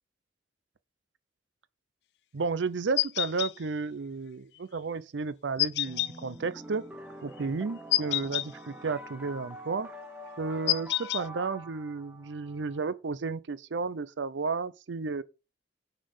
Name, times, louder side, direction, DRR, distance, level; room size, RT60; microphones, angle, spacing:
voice 1, 2.3-6.8 7.2-9.9 10.4-15.2, right 4 dB, 85° right, 0.6 m, -33 dB
sound 1, 3.0-3.5 5.6-6.1 7.9-8.5 10.7-11.2, left 16 dB, 65° left, 0.3 m, -27 dB
sound 2, 5.9-12.9, equal, 10° right, 0.7 m, -46 dB
6.3 x 4.2 x 5.5 m
head